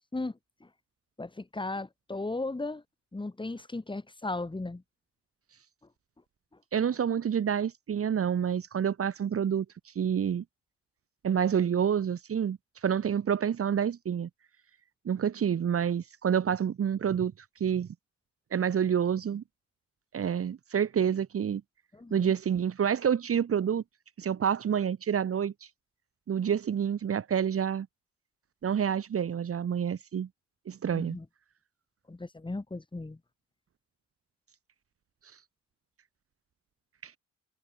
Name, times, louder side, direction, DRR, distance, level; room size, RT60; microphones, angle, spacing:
voice 1, 1.2-2.8 3.1-4.8 21.9-22.3 30.9-31.2 32.1-33.2, left 2 dB, 15° left, 4.7 m, -36 dB
voice 2, 6.7-10.4 11.2-14.3 15.1-17.3 17.6-17.9 18.5-19.4 20.1-21.6 22.1-23.8 24.2-25.7 26.3-27.9 28.6-30.3 30.7-31.2 37.0-37.1, right 8 dB, 50° right, 1.9 m, -28 dB
cardioid pair, 90°, 30 cm